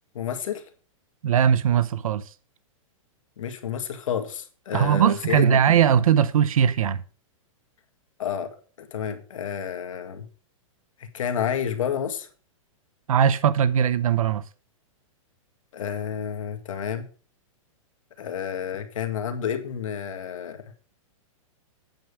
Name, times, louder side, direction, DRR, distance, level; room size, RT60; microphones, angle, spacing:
voice 1, 0.1-0.6 3.4-5.4 8.2-8.5 8.8-10.3 11.0-12.3 15.7-17.1 18.2-20.6, left 8 dB, 70° left, 2.0 m, -30 dB
voice 2, 1.2-2.2 4.7-7.0 13.1-14.4, right 8 dB, 85° right, 0.8 m, -20 dB
9.2 x 7.0 x 4.8 m
hypercardioid pair, 175°, 17 cm